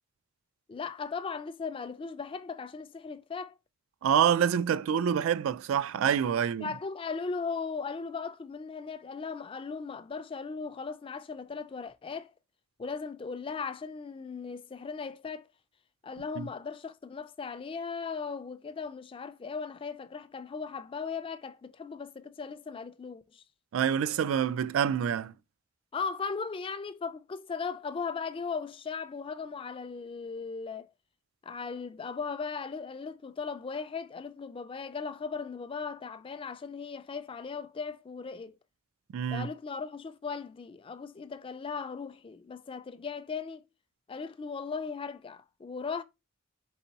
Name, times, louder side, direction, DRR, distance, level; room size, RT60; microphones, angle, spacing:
voice 1, 0.7-3.5 6.4-12.3 12.8-15.5 16.0-23.4 25.9-30.9 31.4-38.6 39.3-43.6 44.1-46.0, left 5 dB, 25° left, 0.3 m, -37 dB
voice 2, 4.0-6.7 16.4-16.5 23.7-25.3 39.1-39.5, right 8 dB, 90° right, 0.3 m, -27 dB
4.3 x 4.0 x 2.8 m
head